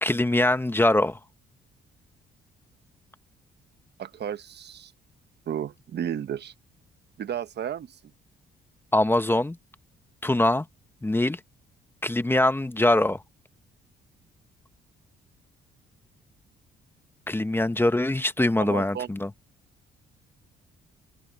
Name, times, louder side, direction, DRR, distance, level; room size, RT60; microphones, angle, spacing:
voice 1, 0.0-1.2 8.9-9.6 10.2-10.6 11.0-11.4 12.0-13.2 17.3-19.3, left 1 dB, 10° left, 1.1 m, -23 dB
voice 2, 4.0-4.9 5.5-6.5 7.2-8.0 18.6-19.1, right 9 dB, 55° right, 1.2 m, -33 dB
open air
cardioid pair, 90°, 20 cm